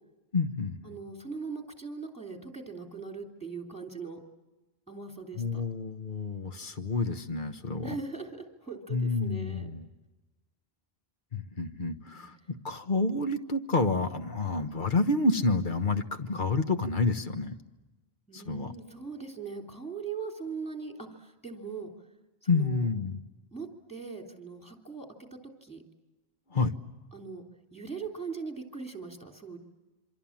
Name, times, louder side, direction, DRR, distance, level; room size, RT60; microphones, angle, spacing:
voice 1, 0.3-0.8 5.4-8.0 8.9-9.9 11.3-17.5 18.3-18.7 22.5-23.2 26.5-26.7, left 3 dB, 50° left, 8 dB, 1.5 m, -29 dB
voice 2, 0.8-4.2 4.9-5.6 7.8-9.7 12.1-12.2 18.3-21.9 22.4-22.9 23.5-25.1 25.6-25.8 27.1-27.4 27.7-29.6, right 5 dB, 5° left, 3 dB, 3.2 m, -40 dB
27.0 x 25.5 x 7.4 m, 1.1 s
omnidirectional pair, 1.1 m